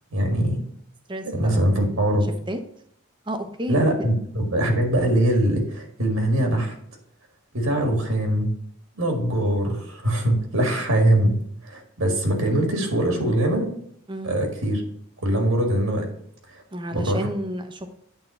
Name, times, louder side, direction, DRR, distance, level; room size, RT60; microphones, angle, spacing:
voice 1, 0.1-0.6 1.2-2.3 3.7-6.7 7.5-8.5 9.0-11.4 11.6-13.7 14.2-14.8 15.2-16.1 16.5-16.6 16.9-17.2, right 1 dB, 70° right, 3 dB, 1.7 m, -22 dB
voice 2, 1.1-2.0 2.5-2.6 3.2-3.8 14.1-14.3 16.7-17.9, right 1 dB, 20° right, 7 dB, 0.7 m, -31 dB
8.8 x 3.7 x 6.1 m, 0.68 s
head